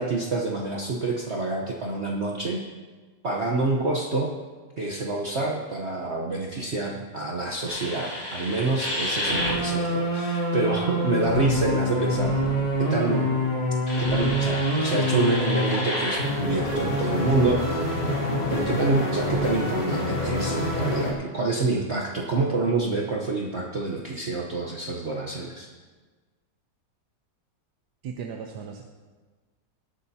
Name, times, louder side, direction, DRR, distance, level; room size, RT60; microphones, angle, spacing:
voice 1, 0.0-2.6 3.2-4.3 4.8-12.3 12.8-13.3 14.0-17.9 18.5-25.7, right 3 dB, 45° right, -1 dB, 1.1 m, -27 dB
sound 1, 7.7-21.1, left 1 dB, 70° left, 3.7 m, -26 dB
voice 2, 28.0-28.8, right 6 dB, 70° right, 3 dB, 1.3 m, -36 dB
18.5 x 12.5 x 2.8 m, 1.4 s
omnidirectional pair, 1.9 m